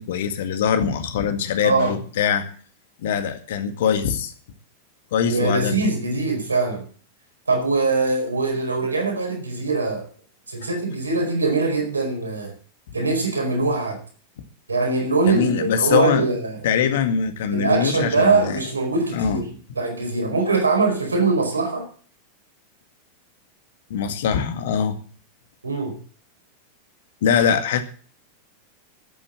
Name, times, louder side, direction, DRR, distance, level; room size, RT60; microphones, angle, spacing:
voice 1, 0.0-2.5 3.0-4.3 5.1-5.9 15.3-16.2 16.6-18.6 19.1-19.4 23.9-25.0 27.2-27.8, left 7 dB, 55° left, 1.9 m, -22 dB
voice 2, 1.6-2.0 5.2-6.9 7.5-10.1 10.5-12.5 12.9-14.0 14.7-16.8 17.5-21.9 25.6-26.0, right 3 dB, 75° right, 4.8 m, -22 dB
12.5 x 9.1 x 7.5 m
figure-of-eight pair, 90°, 0 cm